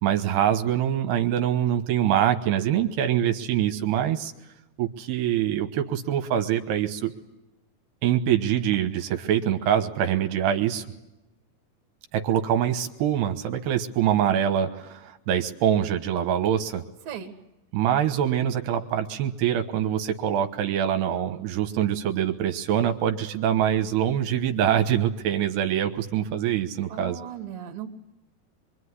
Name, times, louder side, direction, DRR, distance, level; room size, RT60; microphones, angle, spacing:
voice 1, 0.0-4.3 4.8-7.1 8.0-10.9 12.1-16.8 17.7-27.2, right 10 dB, 80° right, 7 dB, 3.2 m, -24 dB
voice 2, 26.9-27.9, right 9 dB, 60° right, 3 dB, 3.3 m, -37 dB
25.0 x 24.0 x 9.8 m, 0.94 s
omnidirectional pair, 4.8 m